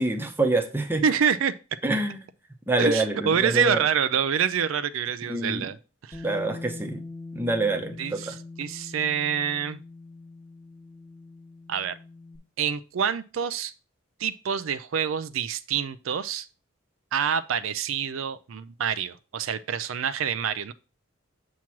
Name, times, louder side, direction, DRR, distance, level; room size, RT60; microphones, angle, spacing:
voice 1, 0.0-1.0 1.8-2.2 2.7-3.8 5.3-5.7 6.2-7.0 7.3-8.4, right 2 dB, 10° right, 0.8 m, -26 dB
voice 2, 1.0-1.5 2.8-5.8 6.0-6.3 8.0-9.8 11.7-12.0 12.6-13.7 14.2-16.5 17.1-20.7, right 7 dB, 75° right, 0.4 m, -26 dB
Bass guitar, 6.1-12.4, left 3 dB, 15° left, 1.2 m, -42 dB
7.3 x 3.1 x 5.8 m
head